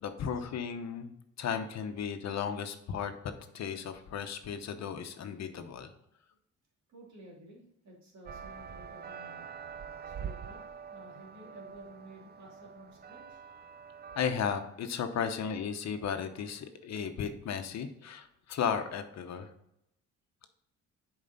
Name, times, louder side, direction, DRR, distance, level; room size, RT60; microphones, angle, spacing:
voice 1, 0.0-5.9 14.2-19.5, left 7 dB, 60° left, 8 dB, 0.9 m, -35 dB
voice 2, 6.9-9.5 10.0-13.4, right 1 dB, 65° right, -2 dB, 2.8 m, -53 dB
sound 1, 8.3-14.3, right 7 dB, 35° right, 0.5 m, -45 dB
7.4 x 4.9 x 4.0 m, 0.82 s
cardioid pair, 90°, 30 cm